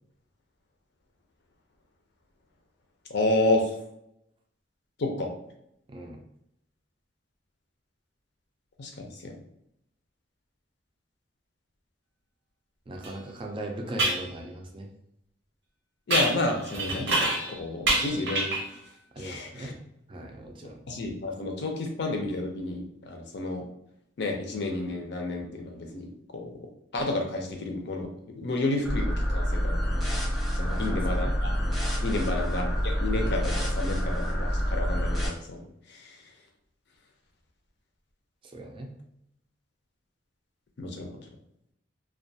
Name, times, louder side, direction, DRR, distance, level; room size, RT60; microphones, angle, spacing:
voice 1, 3.1-3.7 5.0-5.3 8.8-9.4 16.1-17.3 17.6-18.5 19.2-19.8 20.9-23.6 24.2-26.7 26.9-29.8 30.5-31.5 32.0-36.2 40.8-41.2, left 2 dB, 65° left, 2 dB, 0.5 m, -31 dB
voice 2, 5.9-6.2 12.9-14.9 19.2-19.7 20.1-20.8 30.6-31.3 32.1-32.3 38.5-38.9, right 1 dB, 30° right, 2 dB, 0.4 m, -39 dB
sound 1, 13.0-13.1 14.0-14.3 16.1-17.6 17.9-18.7, right 2 dB, 80° right, 0.7 m, -27 dB
sound 2, 28.8-35.3, equal, ahead, 0.7 m, -27 dB
2.3 x 2.2 x 2.6 m, 0.76 s
head